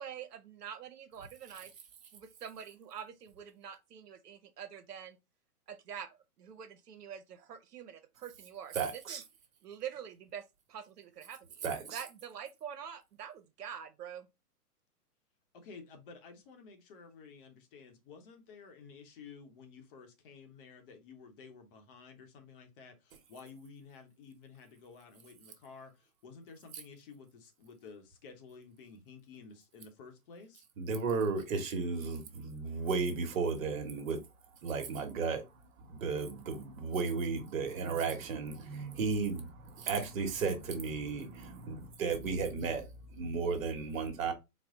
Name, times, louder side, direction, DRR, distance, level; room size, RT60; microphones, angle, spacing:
voice 1, 0.0-1.7 2.1-5.2 5.7-6.1 6.4-8.7 9.1-9.2 9.6-10.4 10.7-11.4 11.9-14.3, right 8 dB, 80° right, 0.8 m, -45 dB
voice 2, 8.7-9.2 11.6-12.0 30.8-34.2 34.6-35.5 35.8-44.3, right 4 dB, 60° right, 1.2 m, -34 dB
voice 3, 15.5-30.6, left 5 dB, 35° left, 0.8 m, -53 dB
4.2 x 2.1 x 3.6 m
hypercardioid pair, 140°, 46 cm